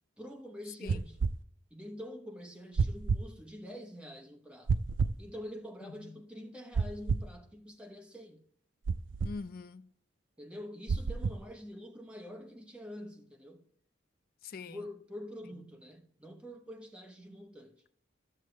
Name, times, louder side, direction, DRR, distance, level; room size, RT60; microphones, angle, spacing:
voice 1, 0.2-1.2 1.7-4.7 5.2-8.5 10.4-13.6 14.7-17.8, equal, 5° right, 1.0 m, -46 dB
sound 1, 0.9-1.4 2.8-3.2 4.7-5.2 6.7-7.3 8.9-9.3 10.9-11.4, right 4 dB, 85° right, 0.4 m, -30 dB
voice 2, 5.8-6.1 9.2-9.9 14.4-14.9, left 4 dB, 50° left, 0.4 m, -43 dB
14.0 x 6.4 x 3.2 m
head